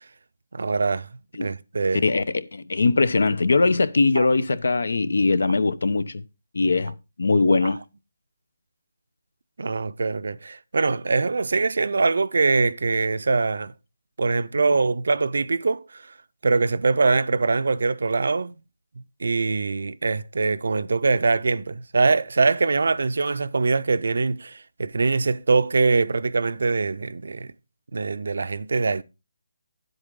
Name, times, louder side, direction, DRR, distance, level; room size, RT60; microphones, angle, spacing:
voice 1, 0.5-1.1 1.4-2.0 4.2-4.3 7.6-7.7 9.6-13.7 14.2-16.0 16.4-18.5 19.0-27.5 27.9-29.0, right 4 dB, 75° right, 0.6 m, -23 dB
voice 2, 2.0-6.2 6.5-7.8, left 3 dB, 75° left, 0.8 m, -21 dB
9.9 x 8.0 x 3.7 m
hypercardioid pair, 170°, 0 cm